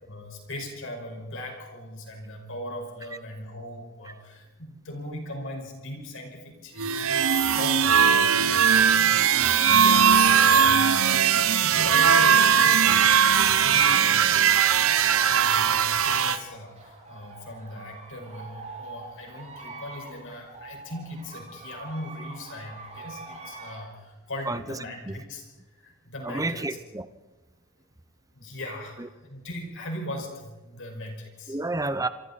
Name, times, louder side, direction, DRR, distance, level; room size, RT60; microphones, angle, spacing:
voice 1, 0.0-14.4 15.3-25.4 25.7-26.7 28.3-31.6, left 1 dB, 60° left, 2 dB, 5.4 m, -39 dB
sound 1, 6.8-16.4, right 7 dB, 65° right, 0.9 m, -19 dB
sound 2, 13.8-23.8, right 3 dB, 30° right, 7.7 m, -44 dB
voice 2, 24.5-24.8 25.1-25.2 26.2-27.0 29.0-29.1 31.5-32.1, right 2 dB, 15° right, 12 dB, 0.8 m, -30 dB
28.0 x 25.5 x 4.2 m, 1.1 s
head